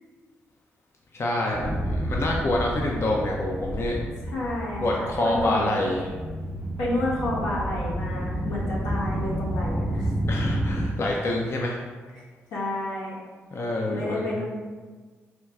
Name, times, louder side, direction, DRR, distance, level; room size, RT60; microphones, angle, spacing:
voice 1, 1.1-4.0 4.8-6.1 10.3-11.8 13.5-14.3, left 1 dB, 45° left, -1 dB, 0.6 m, -27 dB
sound 1, 1.5-10.9, right 1 dB, 5° right, 0.6 m, -30 dB
voice 2, 4.3-5.8 6.8-10.1 12.5-13.2 13.9-14.4, left 1 dB, 85° left, -6 dB, 1.0 m, -30 dB
4.5 x 2.3 x 3.5 m, 1.4 s
hypercardioid pair, 45°, 6 cm